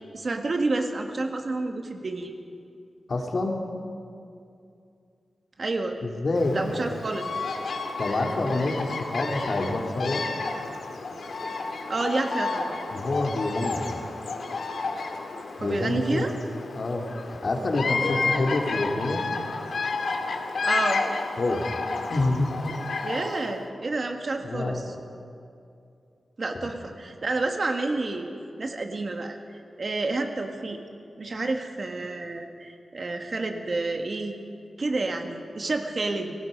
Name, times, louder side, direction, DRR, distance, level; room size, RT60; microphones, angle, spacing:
voice 1, 0.1-2.3 5.6-6.0 6.5-7.2 11.9-12.7 15.6-16.4 20.6-21.0 23.0-24.9 26.4-28.3 28.6-29.4 29.8-30.8 31.2-34.4 34.8-36.3, right 3 dB, 40° right, 4 dB, 1.6 m, -29 dB
voice 2, 3.1-3.6 6.0-6.8 8.0-10.2 12.9-13.8 15.6-16.3 16.7-19.2 21.4-21.6 22.1-22.5 24.4-24.8 26.5-26.7, left 2 dB, 45° left, 1 dB, 2.8 m, -27 dB
Bird vocalization bird call bird song, 6.3-23.6, left 4 dB, 60° left, 2.2 m, -31 dB
29.5 x 20.0 x 5.3 m, 2.5 s
wide cardioid pair, 165°, 0 cm